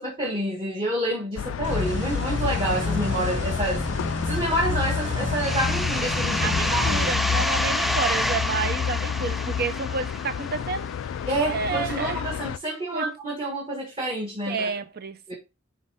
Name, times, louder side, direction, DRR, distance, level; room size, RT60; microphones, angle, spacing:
voice 1, 0.0-3.8 4.3-7.4 11.3-14.7 15.3-15.4, right 1 dB, 30° right, 1.6 m, -28 dB
sound 1, 1.4-12.6, left 8 dB, 90° left, 0.3 m, -30 dB
sound 2, 1.6-7.2, left 1 dB, 75° right, 2.4 m, -30 dB
sound 3, 5.4-10.9, equal, ahead, 0.3 m, -28 dB
voice 2, 6.4-10.9 11.4-12.2 12.9-13.1 14.5-15.3, right 4 dB, 55° right, 0.6 m, -30 dB
9.4 x 3.2 x 3.4 m
head